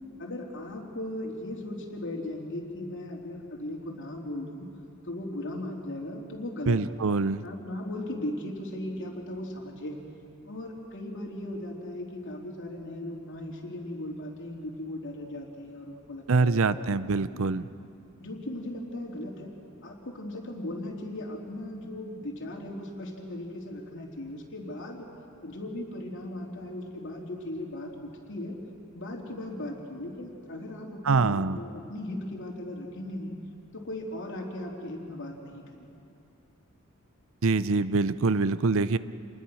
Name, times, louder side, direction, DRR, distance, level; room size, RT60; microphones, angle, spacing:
voice 1, 0.2-4.7 5.0-6.8 7.4-10.0 10.4-17.5 18.2-19.5 19.8-25.1 25.4-28.6 28.9-33.4 33.7-36.0, left 1 dB, 60° left, -1 dB, 3.4 m, -37 dB
voice 2, 6.7-7.4 16.3-17.7 31.0-31.6 37.4-39.0, right 4 dB, 65° right, 15 dB, 0.6 m, -24 dB
28.0 x 20.5 x 6.4 m, 2.6 s
head